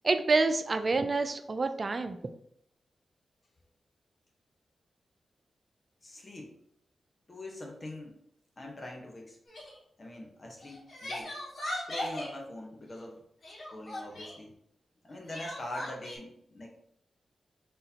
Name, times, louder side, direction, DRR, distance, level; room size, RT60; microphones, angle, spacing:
voice 1, 0.0-2.2, right 3 dB, 45° right, 9 dB, 0.5 m, -27 dB
voice 2, 6.0-6.5 7.3-8.2 8.6-9.4 10.0-11.3 11.8-13.2 13.7-14.5 15.0-16.7, left 1 dB, 45° left, 0 dB, 1.0 m, -43 dB
Crying sobbing, 9.5-9.8 10.6-12.3 13.4-14.4 15.3-16.2, left 1 dB, 60° left, 1.6 m, -38 dB
3.7 x 2.8 x 4.1 m, 0.70 s
cardioid pair, 45°, 0 cm